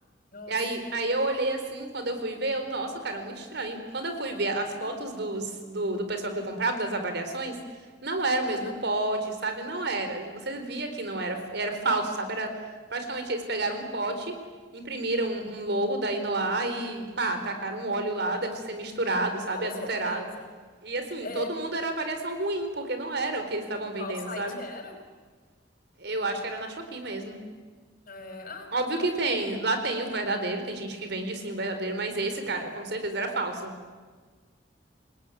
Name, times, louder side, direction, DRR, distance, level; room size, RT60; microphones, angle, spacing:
voice 1, 0.5-7.6 8.0-12.5 12.9-14.3 14.7-20.2 20.8-24.6 26.0-27.4 28.7-33.7, right 2 dB, 65° right, 7 dB, 4.3 m, -30 dB
voice 2, 19.5-20.3 21.2-21.5 24.0-24.9 28.1-29.1, left 3 dB, 50° left, 5 dB, 5.5 m, -39 dB
27.5 x 20.5 x 9.3 m, 1.5 s
head